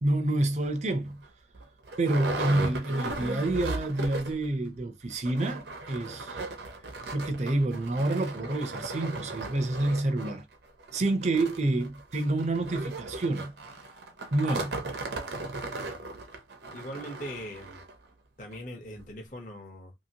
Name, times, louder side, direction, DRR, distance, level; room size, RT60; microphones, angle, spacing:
voice 1, 0.0-1.2 2.0-6.4 7.1-10.4 10.9-13.5 14.3-14.8, right 2 dB, 40° right, 0.5 m, -28 dB
sound 1, 0.6-0.7 1.2-1.3 1.5-4.5 4.8-4.9 5.1-17.9 18.5-18.6 19.0-19.1, right 2 dB, 75° right, 0.7 m, -37 dB
voice 2, 16.7-17.8 18.4-19.9, equal, 45° left, 0.8 m, -41 dB
2.8 x 2.8 x 2.8 m
head